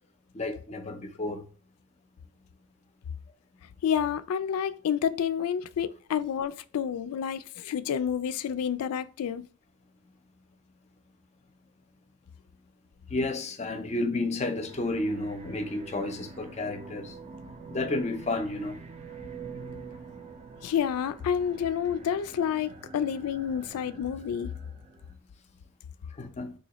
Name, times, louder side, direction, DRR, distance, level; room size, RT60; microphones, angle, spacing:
voice 1, 0.3-1.5 13.1-17.2 17.7-18.8 26.1-26.5, left 2 dB, 30° left, 0.6 m, -31 dB
voice 2, 3.8-9.4 20.6-24.5, left 8 dB, 75° left, 0.3 m, -29 dB
sound 1, 14.6-25.1, right 4 dB, 30° right, 0.5 m, -46 dB
3.9 x 2.7 x 2.9 m
head